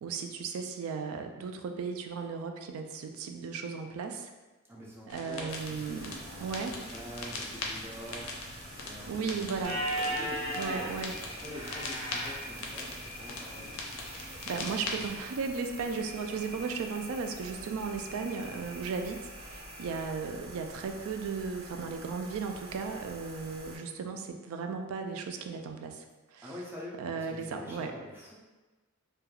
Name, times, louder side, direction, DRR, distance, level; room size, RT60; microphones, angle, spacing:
voice 1, 0.0-4.3 5.1-6.7 9.1-9.8 10.6-11.1 14.1-26.0 26.3-26.5 27.0-27.9, right 5 dB, 85° right, 5 dB, 0.3 m, -36 dB
voice 2, 4.6-8.5 8.8-14.2 26.4-28.4, left 1 dB, 10° right, -4 dB, 0.4 m, -46 dB
sound 1, 5.1-15.1, left 3 dB, 75° left, 0.5 m, -41 dB
sound 2, 5.5-23.8, right 1 dB, 70° right, 0.7 m, -48 dB
sound 3, 9.6-20.0, equal, 40° right, 1.3 m, -40 dB
3.0 x 2.2 x 2.3 m, 1.2 s
head